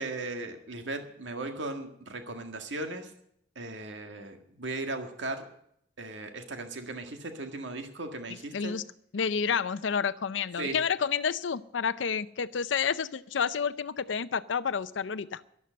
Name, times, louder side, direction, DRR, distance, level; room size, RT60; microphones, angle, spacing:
voice 1, 0.0-3.1 3.6-5.4 6.0-8.8 10.6-10.8, right 2 dB, 80° right, 5 dB, 1.8 m, -37 dB
voice 2, 8.5-8.8 9.1-15.4, left 6 dB, 85° left, 13 dB, 0.5 m, -30 dB
12.0 x 12.0 x 7.6 m, 0.71 s
head